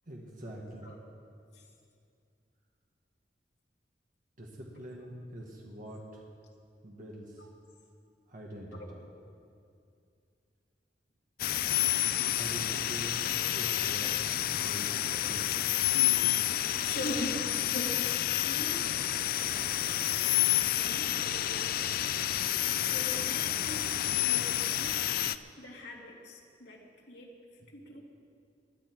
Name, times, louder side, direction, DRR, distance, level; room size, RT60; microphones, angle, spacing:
voice 1, 0.1-0.9 4.4-6.2 6.8-7.5 8.3-9.0 12.3-13.2 13.5-14.1 14.5-15.8 27.6-27.7, right 1 dB, 50° right, -2 dB, 1.7 m, -44 dB
voice 2, 8.7-9.1 13.3-13.5 14.0-14.1 14.4-14.5 15.1-15.3 15.9-16.3 16.8-17.9 18.4-22.2 22.8-23.9 24.2-25.1 25.6-27.3 27.7-28.0, left 1 dB, 70° left, -1 dB, 2.3 m, -43 dB
sound 1, 11.4-25.4, left 12 dB, 55° left, 0.4 m, -29 dB
20.0 x 11.5 x 4.7 m, 2.4 s
head